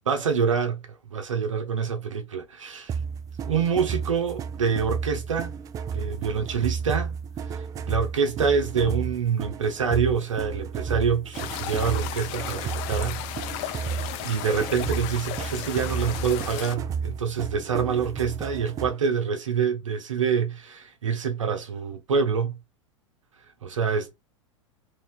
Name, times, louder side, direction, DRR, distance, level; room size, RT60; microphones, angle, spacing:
voice 1, 0.1-0.8 1.1-2.9 3.4-5.6 5.9-7.2 7.5-22.5 23.6-24.2, right 6 dB, 80° right, 0.8 m, -26 dB
sound 1, 2.9-19.1, right 6 dB, 20° right, 0.3 m, -33 dB
sound 2, 11.3-16.8, left 11 dB, 40° left, 0.5 m, -34 dB
3.0 x 2.7 x 3.2 m
figure-of-eight pair, 95°, 16 cm